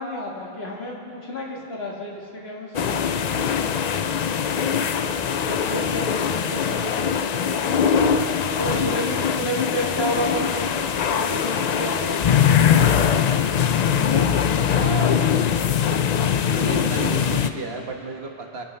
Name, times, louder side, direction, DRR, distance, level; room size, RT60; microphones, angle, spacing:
voice 1, 0.0-3.5 5.6-7.3 8.5-10.7 11.1-13.3 13.8-15.5, equal, 80° left, -3 dB, 2.2 m, -31 dB
sound 1, 2.7-17.5, left 8 dB, 55° left, 0.5 m, -22 dB
voice 2, 5.5-5.9 8.7-9.5 14.7-15.2 16.5-18.6, right 3 dB, 80° right, 2 dB, 1.5 m, -33 dB
24.5 x 11.0 x 3.3 m, 2.5 s
omnidirectional pair, 1.0 m